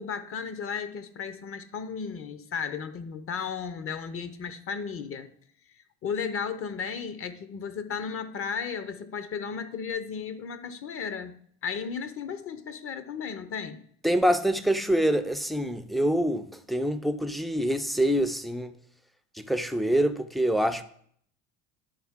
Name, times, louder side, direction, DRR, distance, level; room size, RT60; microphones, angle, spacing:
voice 1, 0.0-5.3 5.7-11.4 11.6-13.8, left 6 dB, 40° left, 0.7 m, -34 dB
voice 2, 14.0-18.7 19.4-20.8, equal, ahead, 0.3 m, -25 dB
10.5 x 3.9 x 3.6 m
supercardioid pair, 100°, 34 cm